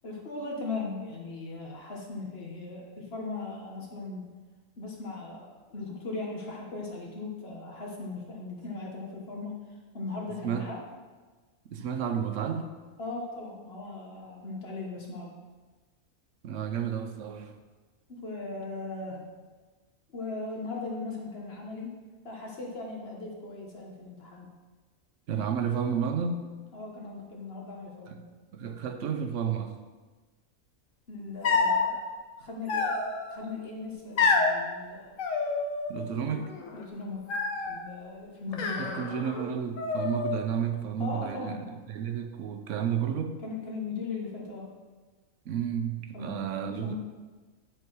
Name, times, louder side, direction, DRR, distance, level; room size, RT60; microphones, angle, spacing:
voice 1, 0.0-4.2 4.8-9.6 9.9-10.8 13.0-15.3 18.2-19.2 20.1-21.9 22.2-24.5 26.7-28.2 31.1-32.0 32.4-33.0 33.3-35.1 36.2-36.4 36.7-37.2 37.7-39.2 41.0-41.6 43.4-44.7 46.1-46.9, left 3 dB, 45° left, -1 dB, 1.6 m, -38 dB
voice 2, 11.7-12.7 16.4-17.6 25.3-26.5 28.1-28.2 28.5-29.7 35.9-36.5 38.8-43.4 45.5-46.9, right 7 dB, 65° right, 7 dB, 1.0 m, -31 dB
sound 1, 31.4-31.9 32.7-33.4 34.2-34.6 35.2-36.0 36.3-36.8 37.3-37.8 38.5-39.4 39.8-40.5, left 4 dB, 70° left, 1.3 m, -28 dB
9.7 x 4.6 x 4.7 m, 1.3 s
omnidirectional pair, 1.4 m